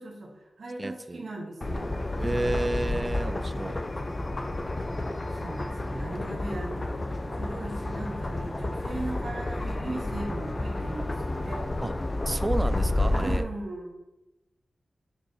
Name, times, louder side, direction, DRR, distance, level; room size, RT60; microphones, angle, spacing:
voice 1, 0.0-2.7 3.1-3.5 5.3-11.7 13.1-14.0, right 2 dB, 75° right, -3 dB, 2.1 m, -39 dB
voice 2, 0.8-1.2 2.2-3.8 11.8-11.9 12.3-13.4, right 2 dB, 20° right, 11 dB, 0.4 m, -31 dB
sound 1, 1.6-13.4, left 2 dB, 30° left, 0.6 m, -30 dB
9.5 x 6.3 x 4.1 m, 0.99 s
wide cardioid pair, 140°, 0 cm